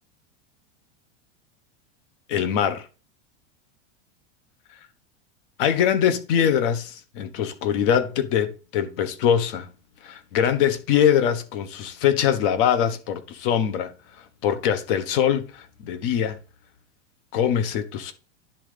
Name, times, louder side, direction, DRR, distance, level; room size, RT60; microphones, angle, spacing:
voice 1, 2.3-2.8 5.6-9.7 10.0-13.9 14.4-16.4 17.3-18.1, left 9 dB, 50° left, 1.2 m, -23 dB
10.5 x 3.8 x 5.1 m
supercardioid pair, 165°, 36 cm